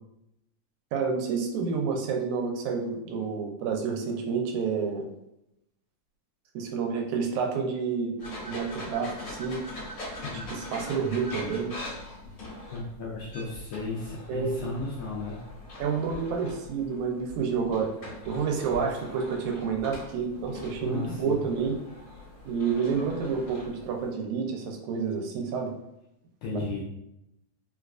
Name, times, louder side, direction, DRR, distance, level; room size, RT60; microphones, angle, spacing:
voice 1, 0.9-5.1 6.5-9.6 10.5-11.7 14.3-14.7 15.8-17.9 18.3-21.8 22.5-25.7 26.5-26.8, right 5 dB, 85° right, 2 dB, 1.9 m, -29 dB
sound 1, 8.2-24.1, left 1 dB, 50° left, 1.6 m, -42 dB
voice 2, 12.7-15.4 18.7-18.9 20.8-21.4 26.4-26.8, left 3 dB, 80° left, -5 dB, 1.5 m, -35 dB
4.5 x 2.3 x 2.3 m, 0.85 s
omnidirectional pair, 3.4 m